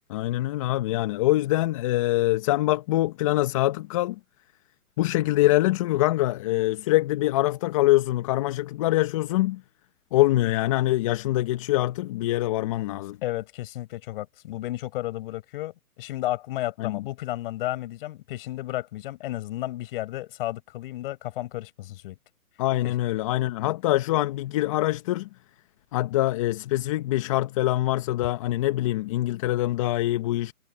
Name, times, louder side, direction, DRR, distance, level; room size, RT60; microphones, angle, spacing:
voice 1, 0.1-4.2 5.0-9.6 10.1-13.2 16.8-17.0 22.6-25.3 25.9-30.5, left 16 dB, 20° left, 0.9 m, -24 dB
voice 2, 13.2-22.2 22.8-22.9, left 15 dB, 40° left, 4.9 m, -33 dB
hypercardioid pair, 145°, 44 cm